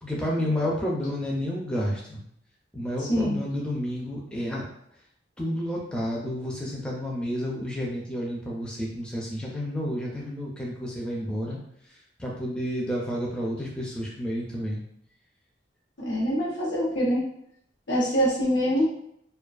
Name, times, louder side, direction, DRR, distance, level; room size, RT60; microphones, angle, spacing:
voice 1, 0.0-2.2 2.7-4.7 5.4-11.6 12.2-14.8, equal, 5° left, -4 dB, 0.4 m, -30 dB
voice 2, 16.0-17.2 17.9-18.9, equal, 85° left, -5 dB, 0.9 m, -24 dB
2.3 x 2.3 x 2.4 m, 0.69 s
head